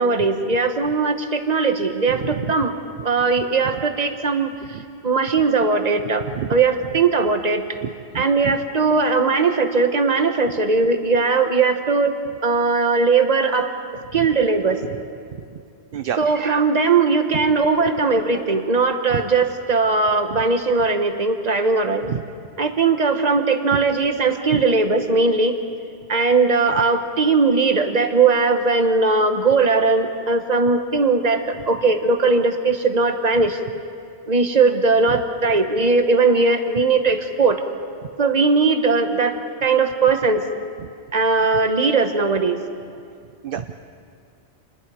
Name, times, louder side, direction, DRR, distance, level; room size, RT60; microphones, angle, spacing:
voice 1, 0.0-2.7 3.0-4.5 5.0-6.2 6.5-7.6 8.1-12.1 12.4-13.7 14.1-14.8 16.2-22.1 22.6-25.6 26.1-33.6 34.3-37.6 38.2-40.4 41.1-42.6, right 4 dB, 40° right, 6 dB, 1.3 m, -19 dB
voice 2, 7.8-8.6 15.9-16.2 19.1-19.2 22.1-22.2 24.5-24.6 43.4-43.7, right 9 dB, 60° right, 8 dB, 0.8 m, -28 dB
28.0 x 21.0 x 4.9 m, 2.3 s
omnidirectional pair, 1.2 m